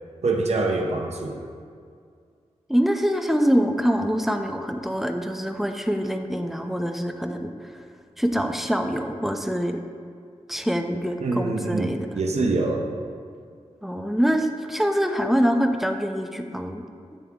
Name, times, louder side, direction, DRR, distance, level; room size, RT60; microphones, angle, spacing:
voice 1, 0.2-1.4 11.2-12.9, right 3 dB, 65° right, 1 dB, 0.7 m, -25 dB
voice 2, 2.7-7.5 8.2-9.8 10.5-12.0 13.8-16.8, equal, ahead, 5 dB, 0.5 m, -24 dB
8.4 x 3.4 x 3.6 m, 2.2 s
cardioid pair, 45°, 12 cm